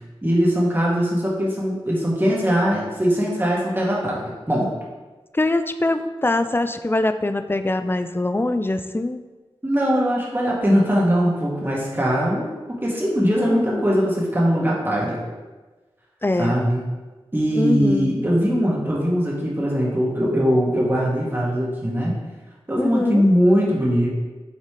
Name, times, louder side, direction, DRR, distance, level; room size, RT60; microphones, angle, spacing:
voice 1, 0.2-4.7 9.6-15.2 16.4-16.8 17.3-22.2 22.7-24.1, equal, 20° right, -5 dB, 2.0 m, -21 dB
voice 2, 5.3-9.2 13.4-13.8 16.2-16.5 17.6-18.2 22.8-23.3, left 2 dB, 20° left, 9 dB, 0.4 m, -23 dB
7.2 x 4.1 x 3.3 m, 1.2 s
cardioid pair, 40°, 10 cm